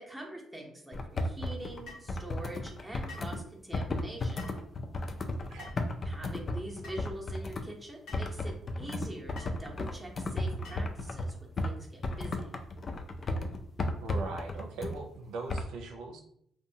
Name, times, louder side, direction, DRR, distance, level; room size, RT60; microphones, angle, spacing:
voice 1, 0.0-4.4 6.0-12.5, right 1 dB, 5° right, -2 dB, 0.7 m, -44 dB
sound 1, 0.9-3.4 3.7-7.6 8.1-11.8 12.0-15.0 15.5-15.6, left 2 dB, 40° left, 0.3 m, -34 dB
sound 2, 1.9-2.1 3.1-3.3 4.4-4.6 5.6-5.9 6.8-7.0 8.1-8.3 9.4-9.6 10.6-11.0, left 3 dB, 80° left, 1.0 m, -48 dB
voice 2, 14.0-16.2, right 3 dB, 90° right, 2 dB, 0.4 m, -40 dB
2.6 x 2.1 x 2.7 m, 0.69 s
cardioid pair, 90°, 0 cm